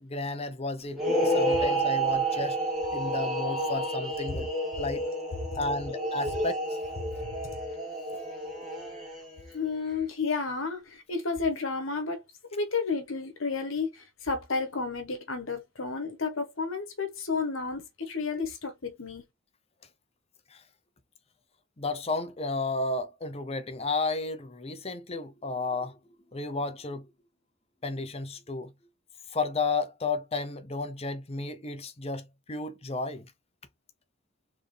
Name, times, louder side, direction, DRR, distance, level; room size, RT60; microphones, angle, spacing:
voice 1, 0.0-2.6 2.9-4.5 4.8-5.1 5.6-6.6 8.1-8.2 20.5-20.6 21.8-26.0 26.3-27.1 27.8-28.7 29.3-33.3, left 3 dB, 30° left, 0.7 m, -32 dB
sound 1, 0.9-9.5, right 1 dB, ahead, 2.0 m, -30 dB
voice 2, 9.5-10.8 11.1-12.2 12.5-13.9 14.2-19.2, left 4 dB, 75° left, 1.2 m, -31 dB
3.7 x 3.5 x 3.3 m
head